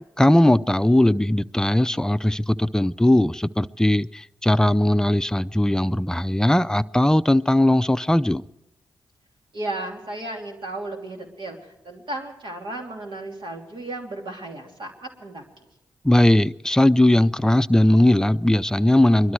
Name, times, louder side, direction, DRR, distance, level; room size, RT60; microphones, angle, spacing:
voice 1, 0.2-8.4 16.0-19.3, left 1 dB, 5° left, 13 dB, 0.6 m, -19 dB
voice 2, 9.5-15.4, right 2 dB, 65° right, 1 dB, 3.2 m, -34 dB
22.5 x 12.5 x 4.8 m, 0.95 s
supercardioid pair, 45°, 9 cm